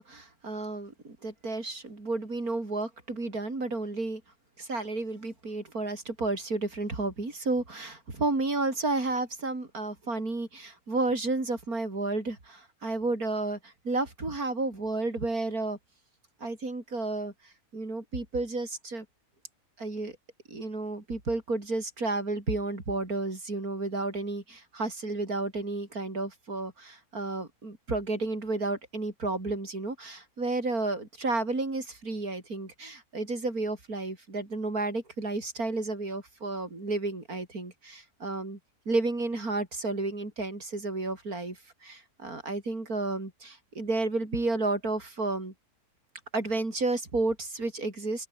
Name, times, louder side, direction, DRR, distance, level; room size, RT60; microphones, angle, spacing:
voice 1, 0.0-4.2 4.6-15.8 16.4-19.1 19.8-20.2 20.5-38.6 38.9-45.5 46.3-48.3, right 2 dB, 70° right, 5.4 m, -32 dB
omnidirectional pair, 1.6 m